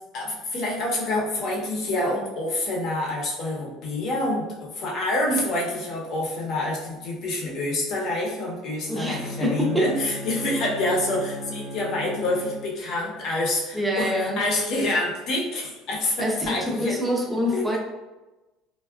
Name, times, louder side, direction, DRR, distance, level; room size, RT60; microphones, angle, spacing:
voice 1, 0.1-17.0 17.5-17.8, left 1 dB, 55° left, -2 dB, 0.8 m, -27 dB
Bowed string instrument, 8.8-12.9, equal, 85° right, 0.9 m, -36 dB
voice 2, 8.9-9.9 13.7-14.4 16.2-17.8, equal, 5° right, -1 dB, 0.6 m, -25 dB
3.4 x 2.3 x 2.3 m, 1.1 s
cardioid pair, 130°, 0 cm